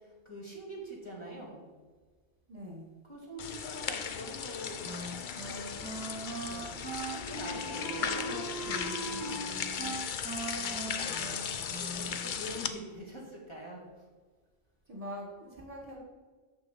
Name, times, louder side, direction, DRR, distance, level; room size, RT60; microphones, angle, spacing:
voice 1, 0.3-1.6 3.0-4.9 5.5-5.9 6.4-8.4 9.2-9.4 11.4-13.8, equal, 25° left, -4 dB, 2.1 m, -44 dB
voice 2, 2.5-2.9 8.0-10.0 10.5-11.4 14.9-16.0, equal, 30° right, -2 dB, 1.5 m, -44 dB
sound 1, 3.4-12.7, left 7 dB, 55° left, 0.6 m, -37 dB
Wind instrument woodwind instrument, 4.8-12.3, right 2 dB, 5° right, 2.1 m, -40 dB
6.7 x 6.3 x 7.0 m, 1.4 s
omnidirectional pair, 1.3 m